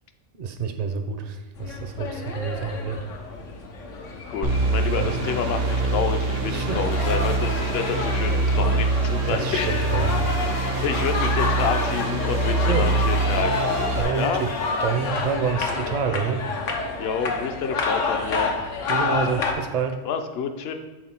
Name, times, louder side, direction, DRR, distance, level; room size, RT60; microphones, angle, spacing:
voice 1, 0.3-3.1 5.0-5.2 6.5-6.9 9.3-10.6 12.6-12.9 13.9-14.5 14.8-16.5 18.9-20.0, right 6 dB, 45° right, 6 dB, 0.5 m, -28 dB
sound 1, 1.6-19.5, left 4 dB, 90° left, 1.2 m, -29 dB
voice 2, 4.3-10.0 10.5-13.5 14.1-14.4 17.0-18.5 20.0-20.7, left 6 dB, 60° left, 7 dB, 0.8 m, -28 dB
sound 2, 4.4-14.0, right 2 dB, 85° right, 1.1 m, -24 dB
sound 3, 6.9-8.8 9.4-16.1, left 2 dB, 25° left, 0.4 m, -37 dB
7.4 x 3.9 x 4.3 m, 1.3 s
omnidirectional pair, 1.3 m